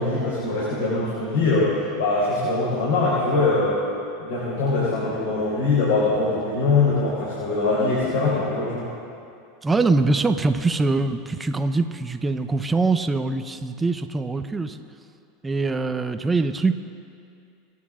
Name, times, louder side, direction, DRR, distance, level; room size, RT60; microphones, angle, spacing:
voice 1, 0.0-3.8 4.2-8.9, left 3 dB, 70° left, -7 dB, 4.4 m, -22 dB
voice 2, 9.6-14.8 15.4-16.7, right 3 dB, 15° right, 8 dB, 0.9 m, -23 dB
28.5 x 9.7 x 3.8 m, 2.5 s
hypercardioid pair, 100°, 0 cm